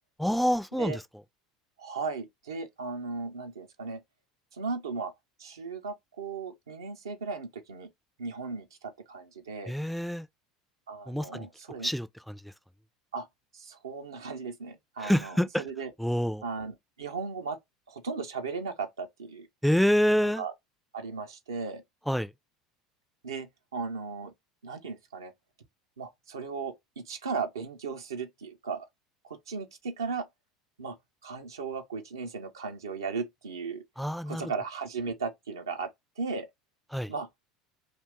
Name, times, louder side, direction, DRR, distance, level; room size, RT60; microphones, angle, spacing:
voice 1, 0.2-1.0 9.7-10.3 11.1-11.5 11.8-12.5 15.0-15.6 16.0-16.4 19.6-20.4 22.1-22.3 34.0-34.5 36.9-37.1, equal, ahead, 0.3 m, -27 dB
voice 2, 1.8-4.0 4.6-5.1 5.4-7.9 8.2-9.7 10.9-11.9 13.1-13.3 13.5-15.3 15.6-15.9 16.4-17.6 17.9-19.5 20.2-20.5 20.9-21.8 23.2-24.3 24.6-25.3 26.0-28.9 29.2-30.3 30.8-31.0 31.2-33.8 34.3-35.9 36.2-36.5 37.1-37.3, right 4 dB, 80° right, 0.6 m, -36 dB
2.5 x 2.2 x 3.5 m
figure-of-eight pair, 70°, 2 cm